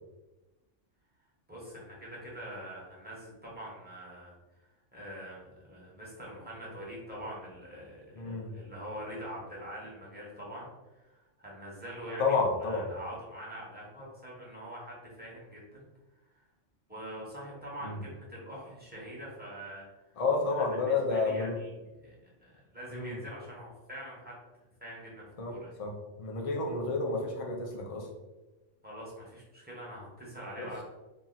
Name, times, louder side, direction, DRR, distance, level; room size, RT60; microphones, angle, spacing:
voice 1, 1.5-4.7 4.9-15.9 16.3-16.4 16.9-19.9 20.6-24.3 24.8-25.7 28.8-30.8, equal, 10° right, -6 dB, 1.2 m, -44 dB
voice 2, 8.1-8.5 12.2-12.9 17.8-18.0 20.2-21.6 22.9-23.2 25.4-25.5 25.8-28.1 30.6-30.7, left 3 dB, 35° left, 0 dB, 0.6 m, -30 dB
2.9 x 2.8 x 4.0 m, 1.1 s
omnidirectional pair, 1.3 m